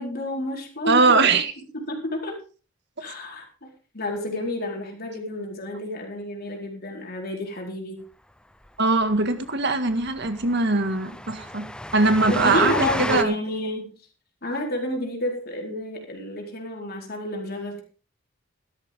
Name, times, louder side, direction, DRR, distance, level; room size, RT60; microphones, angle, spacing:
voice 1, 0.0-1.4 1.7-2.4 3.0-8.0 12.3-13.9 14.4-17.8, left 1 dB, 50° left, 1 dB, 4.4 m, -30 dB
voice 2, 0.9-1.5 8.8-11.7 11.9-13.3, right 3 dB, 60° right, 8 dB, 1.9 m, -21 dB
Train, 8.7-8.8 9.0-9.2 9.4-9.5 9.9-13.2, left 1 dB, 5° left, 0.7 m, -32 dB
16.5 x 13.0 x 3.7 m, 0.37 s
head